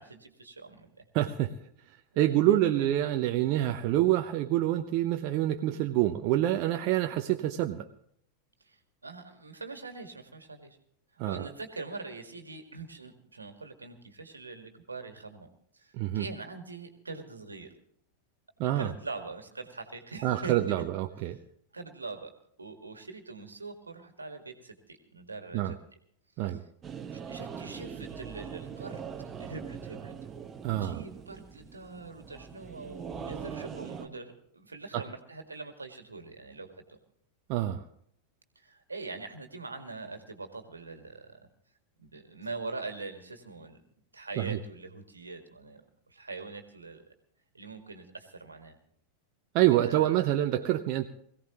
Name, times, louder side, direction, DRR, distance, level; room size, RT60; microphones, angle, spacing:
voice 1, 0.0-1.0 2.1-2.9 8.6-10.8 11.2-17.7 18.8-20.9 21.2-21.4 21.7-22.3 22.6-25.8 26.4-26.6 27.1-29.0 29.4-30.1 30.7-37.0 38.6-41.4 42.0-43.8 44.1-45.8 46.1-47.1 47.5-48.8 49.7-50.2, right 3 dB, 80° right, 6 dB, 1.8 m, -43 dB
voice 2, 1.1-1.5 2.2-7.8 11.2-11.5 15.9-16.2 18.6-18.9 20.2-21.4 25.5-25.7 26.4-26.6 30.6-31.0 34.9-35.0 37.5-37.8 44.4-44.6 49.5-51.1, right 13 dB, 40° right, 6 dB, 0.7 m, -27 dB
sound 1, 26.8-34.1, right 7 dB, 20° right, 1.3 m, -42 dB
21.5 x 16.0 x 3.0 m, 0.65 s
figure-of-eight pair, 90°, 0 cm